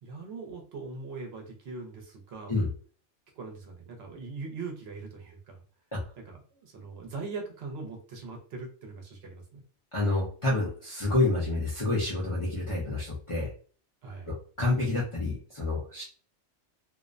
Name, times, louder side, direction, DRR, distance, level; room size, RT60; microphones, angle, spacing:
voice 1, 0.0-2.6 3.4-5.6 6.2-9.6 14.0-14.3, right 4 dB, 65° right, 1 dB, 0.8 m, -41 dB
voice 2, 9.9-13.5 14.3-16.0, left 2 dB, 40° left, -7 dB, 0.5 m, -28 dB
2.4 x 2.1 x 2.4 m, 0.42 s
omnidirectional pair, 1.2 m